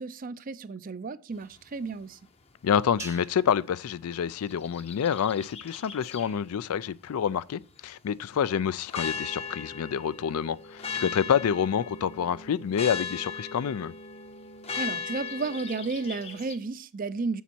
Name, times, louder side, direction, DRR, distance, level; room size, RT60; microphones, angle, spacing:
voice 1, 0.0-2.2 14.7-17.4, right 4 dB, 40° right, 0.4 m, -33 dB
voice 2, 2.6-13.9, left 8 dB, 80° left, 0.4 m, -28 dB
sound 1, 3.0-5.4, right 3 dB, 15° right, 0.8 m, -48 dB
sound 2, 4.4-6.4 8.9-16.6, left 5 dB, 30° left, 0.7 m, -38 dB
7.2 x 7.1 x 4.4 m
head